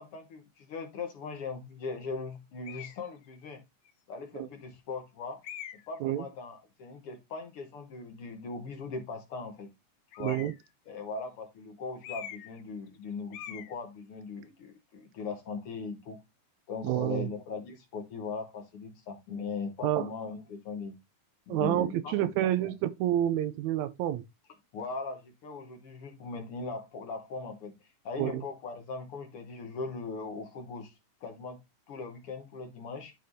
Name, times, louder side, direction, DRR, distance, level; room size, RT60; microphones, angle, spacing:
voice 1, 0.0-3.6 4.1-5.4 5.9-9.7 10.2-10.4 10.9-16.2 16.7-21.0 21.5-22.7 24.7-31.6 31.9-33.1, left 4 dB, 60° left, 1.7 m, -39 dB
sound 1, 2.6-3.0 3.9-4.0 5.4-6.0 10.1-10.7 12.0-12.6 12.9-13.0 13.3-13.7, left 10 dB, 75° left, 2.1 m, -43 dB
voice 2, 10.2-10.5 16.8-17.3 19.8-20.1 21.5-24.2 28.2-28.4, right 12 dB, 80° right, 1.9 m, -28 dB
11.0 x 4.1 x 2.6 m
omnidirectional pair, 3.4 m